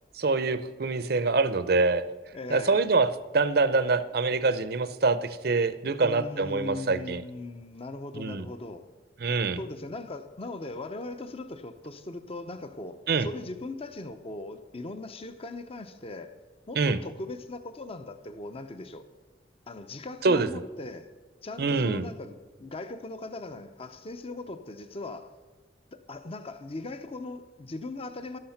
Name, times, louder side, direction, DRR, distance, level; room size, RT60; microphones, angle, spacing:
voice 1, 0.1-2.0 2.5-3.1 3.3-7.2 8.1-8.5 9.2-9.6 13.1-13.3 16.8-17.0 20.2-20.5 21.6-22.1, right 3 dB, 60° right, 0.7 m, -25 dB
voice 2, 2.3-2.9 6.0-8.9 9.6-16.3 16.7-19.1 19.7-21.1 21.4-25.3 25.9-28.4, left 2 dB, 35° left, 0.7 m, -39 dB
12.5 x 12.0 x 5.8 m
head